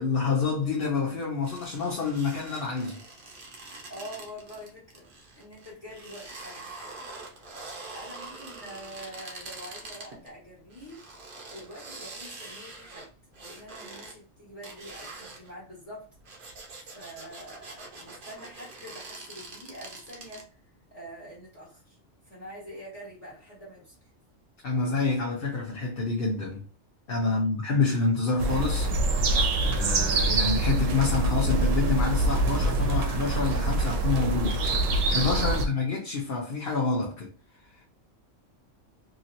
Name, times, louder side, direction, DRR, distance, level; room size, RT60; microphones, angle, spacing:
voice 1, 0.0-3.0 24.6-26.6 27.1-28.9 29.6-34.7 35.1-37.3, left 4 dB, 55° left, 0.9 m, -27 dB
sound 1, 1.4-10.3 10.7-14.1 14.6-15.5 16.1-20.4, right 3 dB, 50° right, 0.9 m, -44 dB
voice 2, 3.9-5.1 5.4-6.9 7.9-11.0 11.5-13.1 13.4-16.1 16.8-22.0 22.2-24.1 27.2-27.6, equal, 30° left, 1.5 m, -45 dB
sound 2, 28.4-35.7, right 2 dB, 90° right, 1.0 m, -25 dB
2.9 x 2.8 x 2.5 m
omnidirectional pair, 1.3 m